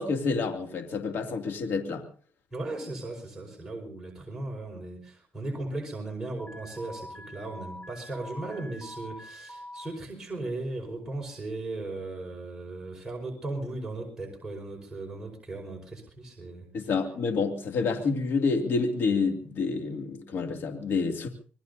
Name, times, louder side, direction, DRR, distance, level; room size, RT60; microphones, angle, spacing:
voice 1, 0.0-2.0 16.7-21.3, left 4 dB, 65° left, 4 dB, 2.5 m, -28 dB
voice 2, 2.5-16.9, right 2 dB, 15° right, -1 dB, 5.0 m, -37 dB
Alarm, 6.4-9.9, left 1 dB, 25° left, 3.7 m, -44 dB
26.5 x 20.0 x 2.7 m, 0.41 s
cardioid pair, 105°, 4 cm